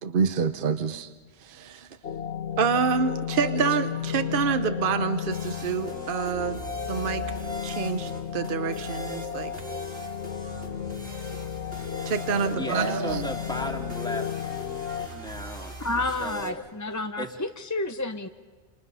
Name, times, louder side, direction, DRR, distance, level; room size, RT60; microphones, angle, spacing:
voice 1, 0.0-1.1 1.4-1.9 2.6-6.6 6.9-7.2 7.6-9.5 12.1-13.2, right 6 dB, 55° right, 9 dB, 1.0 m, -27 dB
sound 1, 2.0-15.1, left 8 dB, 75° left, 1.2 m, -33 dB
sound 2, 5.3-16.5, right 1 dB, 90° right, 4.4 m, -42 dB
voice 2, 12.5-14.3 15.1-16.6 17.2-17.4, equal, 5° left, 1 dB, 2.4 m, -35 dB
voice 3, 15.8-18.3, left 2 dB, 20° left, 7 dB, 0.6 m, -30 dB
28.0 x 27.5 x 5.6 m, 1.5 s
omnidirectional pair, 1.1 m